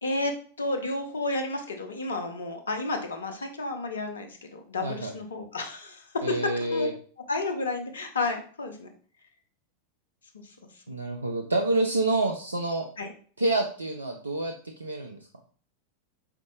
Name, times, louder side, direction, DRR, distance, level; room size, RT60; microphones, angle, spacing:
voice 1, 0.0-6.9 7.3-8.9 13.0-13.1, left 2 dB, 70° left, 5 dB, 0.6 m, -31 dB
voice 2, 4.8-5.1 6.2-6.9 10.9-12.9 13.4-14.5 14.8-15.2, right 2 dB, 80° right, 3 dB, 0.4 m, -27 dB
3.8 x 3.6 x 2.3 m, 0.43 s
figure-of-eight pair, 90°, 0 cm